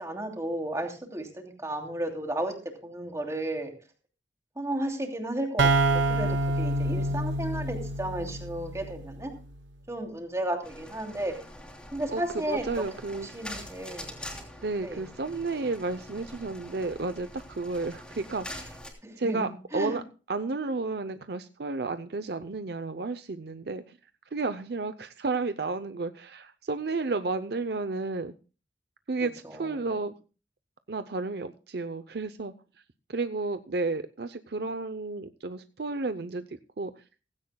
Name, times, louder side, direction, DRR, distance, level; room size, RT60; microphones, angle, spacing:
voice 1, 0.0-2.5 2.8-3.7 4.6-9.3 9.9-11.3 11.9-12.8 13.1-14.2 14.8-15.0 19.0-20.0 29.2-29.7, right 1 dB, 15° right, 2 dB, 2.9 m, -33 dB
sound 1, 5.6-9.2, right 2 dB, 90° right, 1.0 m, -27 dB
sound 2, 10.6-18.9, left 1 dB, 5° left, 3.1 m, -44 dB
voice 2, 12.5-13.5 14.6-18.8 19.2-20.0 20.3-24.0 24.3-28.3 29.1-30.1 30.9-32.5 33.1-36.9, right 3 dB, 60° right, 11 dB, 0.6 m, -32 dB
17.0 x 16.0 x 2.3 m, 0.34 s
head